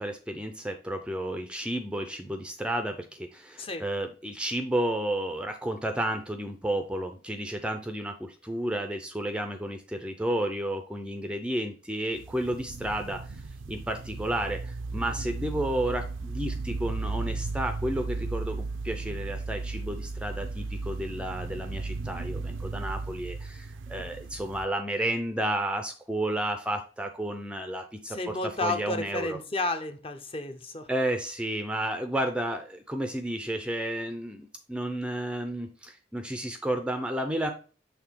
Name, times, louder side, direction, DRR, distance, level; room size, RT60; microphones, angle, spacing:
voice 1, 0.0-13.4 13.7-28.2 28.6-29.4 30.9-37.5, right 1 dB, 5° right, 6 dB, 0.5 m, -32 dB
sound 1, 12.2-24.7, right 3 dB, 80° right, 0.6 m, -35 dB
voice 2, 28.1-30.9, left 2 dB, 30° left, 7 dB, 0.7 m, -32 dB
6.1 x 3.6 x 4.5 m, 0.36 s
head